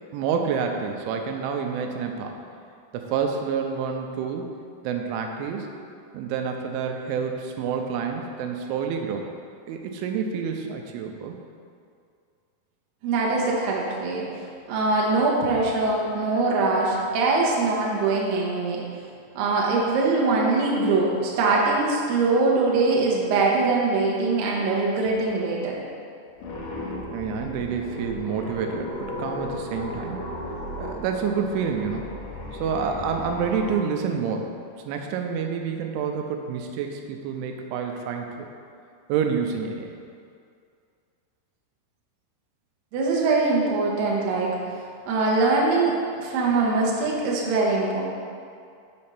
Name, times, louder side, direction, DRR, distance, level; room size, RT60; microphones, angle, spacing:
voice 1, 0.0-2.4 2.9-4.6 4.8-5.7 6.1-9.3 9.7-11.4 27.1-30.3 30.8-32.1 32.6-34.5 34.9-38.5 39.1-39.9, right 6 dB, 85° right, 3 dB, 3.0 m, -28 dB
voice 2, 13.0-14.2 14.7-18.8 19.4-25.8 42.9-44.5 45.1-48.0, right 3 dB, 70° right, -3 dB, 2.2 m, -22 dB
sound 1, 26.4-33.8, left 1 dB, 75° left, 2.9 m, -35 dB
7.5 x 4.4 x 5.6 m, 2.3 s
omnidirectional pair, 5.4 m